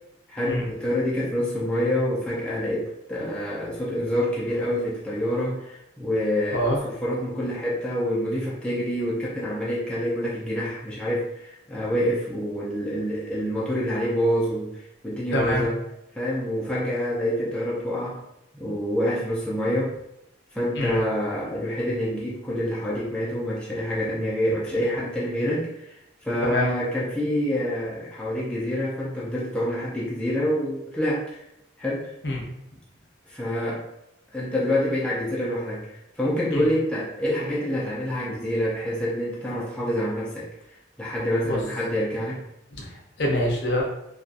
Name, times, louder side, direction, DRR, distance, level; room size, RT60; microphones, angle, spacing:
voice 1, 0.3-15.8 16.2-18.2 18.5-19.9 20.5-25.9 26.2-31.4 31.8-32.1 33.3-33.8 34.3-40.5 41.0-42.4, equal, 5° left, -7 dB, 0.4 m, -27 dB
voice 2, 15.3-15.7 20.8-21.0 26.4-26.7 32.2-32.4 36.5-36.7 41.4-41.6 42.7-43.8, left 1 dB, 60° left, -1 dB, 0.6 m, -25 dB
2.6 x 2.2 x 2.4 m, 0.83 s
head